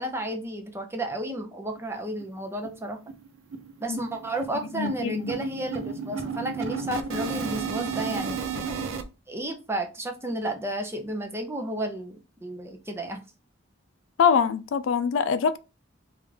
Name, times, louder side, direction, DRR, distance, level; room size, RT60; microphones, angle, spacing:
voice 1, 0.0-3.0 3.8-8.4 9.3-13.2, right 1 dB, 15° right, 0.6 m, -32 dB
sound 1, 1.8-1.9 2.2-2.3 2.6-2.8 3.1-9.0, right 5 dB, 90° right, 0.5 m, -33 dB
voice 2, 4.7-5.3 14.2-15.6, left 6 dB, 75° left, 0.3 m, -23 dB
3.5 x 2.5 x 3.2 m
head